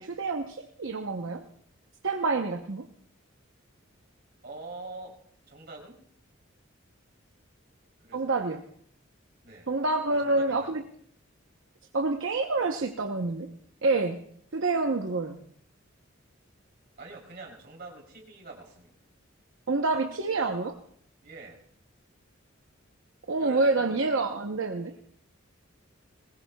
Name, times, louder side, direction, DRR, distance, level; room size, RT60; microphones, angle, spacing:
voice 1, 0.0-1.4 2.0-2.9 8.1-8.6 9.7-10.8 11.9-13.5 13.8-14.3 14.5-15.4 19.7-20.8 23.3-24.9, right 3 dB, 70° right, 4 dB, 0.8 m, -27 dB
voice 2, 4.4-5.2 5.4-6.0 8.0-8.3 9.4-9.7 10.1-10.7 17.0-18.9 21.2-21.6 23.4-24.3, right 3 dB, 50° right, 0 dB, 3.2 m, -45 dB
21.0 x 19.5 x 2.3 m, 0.64 s
head